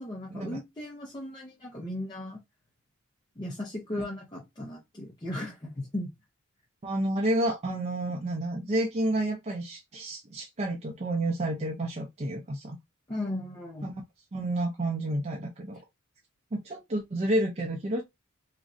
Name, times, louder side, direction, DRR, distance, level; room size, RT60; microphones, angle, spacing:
voice 1, 0.0-2.4 3.4-6.1 13.1-14.0, left 1 dB, 20° left, 0.7 m, -36 dB
voice 2, 6.8-12.8 13.8-13.9 14.3-15.8 16.5-18.0, right 1 dB, 30° right, 0.4 m, -30 dB
3.1 x 2.5 x 2.5 m
head